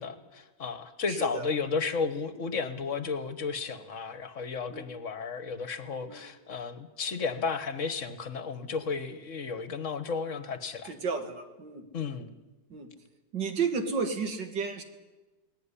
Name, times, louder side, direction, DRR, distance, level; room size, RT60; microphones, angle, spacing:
voice 1, 0.0-10.9 11.9-12.3, left 5 dB, 45° left, 12 dB, 1.5 m, -33 dB
voice 2, 1.1-1.5 4.7-4.9 6.1-6.2 10.8-11.8 12.7-12.9 13.3-14.8, right 5 dB, 80° right, 7 dB, 2.7 m, -32 dB
19.5 x 17.0 x 9.9 m, 1.2 s
omnidirectional pair, 1.9 m